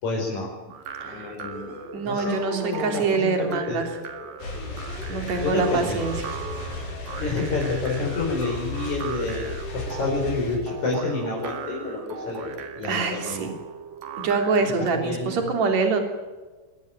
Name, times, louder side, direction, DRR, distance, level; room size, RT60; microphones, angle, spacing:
voice 1, 0.0-0.5 1.0-1.7 2.0-3.8 5.4-6.0 7.2-13.6 14.6-15.6, left 3 dB, 55° left, -3 dB, 6.0 m, -29 dB
sound 1, 0.7-14.9, right 8 dB, 75° right, 3.7 m, -40 dB
sound 2, 1.0-14.7, equal, 30° right, 5.7 m, -41 dB
voice 2, 1.0-1.3 1.9-3.9 5.1-6.1 12.8-13.5 14.2-16.0, right 4 dB, 50° right, 5 dB, 4.4 m, -25 dB
sound 3, 4.4-10.6, left 2 dB, 85° left, 7.0 m, -35 dB
25.0 x 18.5 x 9.1 m, 1.3 s
omnidirectional pair, 4.1 m